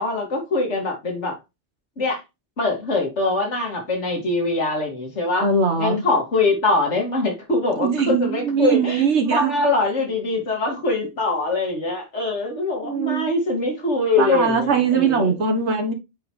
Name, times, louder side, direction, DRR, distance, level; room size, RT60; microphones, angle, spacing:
voice 1, 0.0-1.3 2.0-2.2 2.6-5.5 5.8-15.3, left 2 dB, 85° left, 2.6 m, -23 dB
voice 2, 5.4-6.1 7.8-9.5 12.8-13.3 14.2-15.9, right 5 dB, 75° right, 1.5 m, -21 dB
7.8 x 5.1 x 3.2 m
omnidirectional pair, 1.2 m